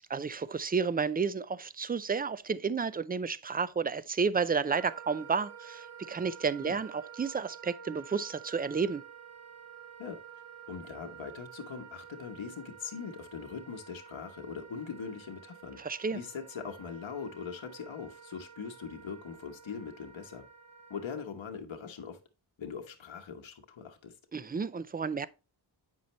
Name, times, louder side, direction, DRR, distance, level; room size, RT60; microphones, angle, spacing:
voice 1, 0.1-9.0 15.8-16.2 24.3-25.3, right 5 dB, 20° right, 0.4 m, -31 dB
Wind instrument woodwind instrument, 4.7-21.3, right 8 dB, 85° right, 2.5 m, -50 dB
voice 2, 10.7-15.8 16.1-20.5 20.9-22.2 22.6-24.1, left 6 dB, 75° left, 1.1 m, -41 dB
7.9 x 5.4 x 3.0 m
cardioid pair, 50°, 47 cm